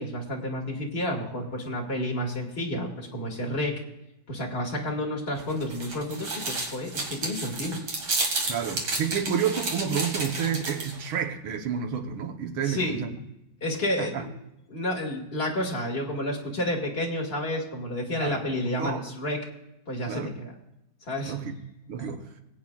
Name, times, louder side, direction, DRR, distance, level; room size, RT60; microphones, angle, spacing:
voice 1, 0.0-3.7 4.3-7.8 12.6-13.0 13.6-14.2 14.7-19.4 19.9-20.5 21.1-21.3 22.1-22.2, left 1 dB, 30° left, 2.1 m, -30 dB
sound 1, 5.4-11.1, right 2 dB, 70° right, 2.6 m, -31 dB
voice 2, 8.5-13.2 14.0-14.3 18.2-18.4 18.8-19.0 20.1-20.3 21.3-21.5 21.9-22.2, right 7 dB, 90° right, 2.0 m, -30 dB
22.0 x 8.6 x 2.4 m
omnidirectional pair, 2.2 m